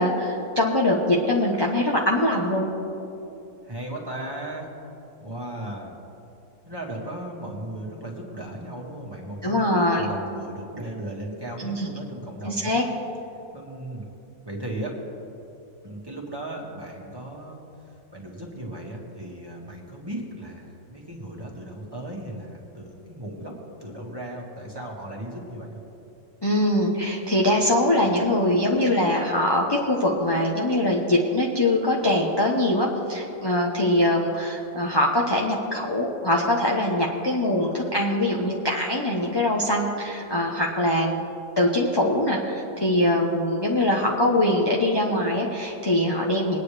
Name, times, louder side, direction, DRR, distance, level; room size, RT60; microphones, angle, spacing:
voice 1, 0.0-2.7 9.4-10.0 11.6-11.9 12.4-12.8 26.4-41.2 41.6-46.6, left 1 dB, 20° left, -2 dB, 0.9 m, -23 dB
voice 2, 3.6-4.7 5.2-5.9 6.7-12.8 13.5-14.1 14.4-15.0 15.8-25.8, right 1 dB, 15° right, -2 dB, 1.9 m, -36 dB
22.0 x 9.4 x 3.3 m, 2.9 s
omnidirectional pair, 1.5 m